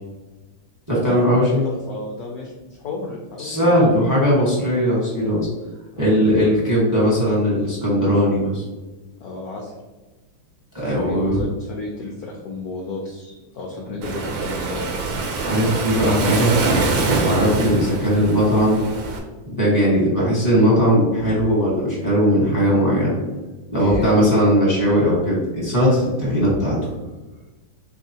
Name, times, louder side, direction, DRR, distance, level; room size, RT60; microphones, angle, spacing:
voice 1, 0.9-1.7 3.4-5.5 6.0-8.6 10.7-11.4 15.4-16.5 17.2-18.8 19.5-23.2 23.7-26.8, equal, 15° right, -6 dB, 0.8 m, -18 dB
voice 2, 1.4-3.8 5.9-6.2 9.2-9.7 10.8-14.9 23.8-24.3, left 3 dB, 80° left, -1 dB, 0.8 m, -33 dB
Waves surf, 14.0-19.2, right 3 dB, 75° right, 1.4 m, -24 dB
4.0 x 3.5 x 2.8 m, 1.2 s
omnidirectional pair, 2.3 m